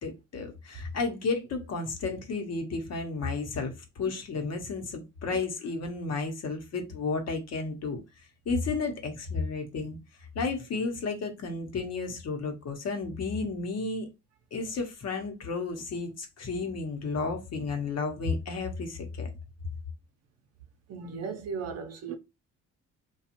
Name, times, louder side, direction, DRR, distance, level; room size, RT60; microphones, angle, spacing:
voice 1, 0.0-8.0 8.5-10.0 10.3-14.1 14.5-19.3, left 4 dB, 55° left, 0.9 m, -32 dB
voice 2, 20.9-22.1, right 5 dB, 55° right, 0.7 m, -36 dB
2.4 x 2.3 x 2.9 m
cardioid pair, 90°, 30 cm